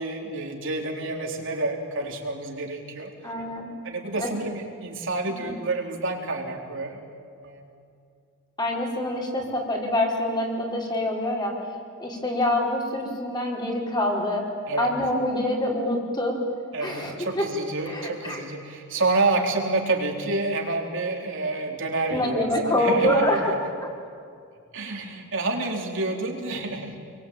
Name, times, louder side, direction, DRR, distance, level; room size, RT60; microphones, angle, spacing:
voice 1, 0.0-3.1 3.8-7.0 7.4-7.7 14.7-14.9 16.7-23.6 24.7-27.0, right 2 dB, 65° right, 1 dB, 4.0 m, -28 dB
voice 2, 3.2-3.7 4.2-4.3 5.4-5.5 8.6-11.6 12.0-14.5 14.8-16.4 16.8-17.5 17.9-18.4 22.1-23.9, left 1 dB, 20° left, -1 dB, 5.2 m, -25 dB
29.0 x 23.0 x 9.1 m, 2.3 s
head